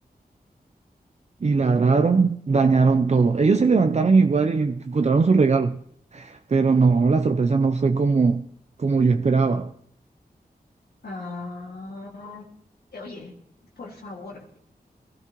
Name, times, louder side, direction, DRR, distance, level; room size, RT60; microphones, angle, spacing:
voice 1, 1.4-5.8 6.1-8.4 8.8-9.7, right 4 dB, 45° right, 0.5 m, -20 dB
voice 2, 11.0-12.5 12.9-13.3 13.8-14.6, left 3 dB, 90° left, 2.1 m, -38 dB
18.5 x 13.0 x 3.0 m
wide cardioid pair, 75°, 16 cm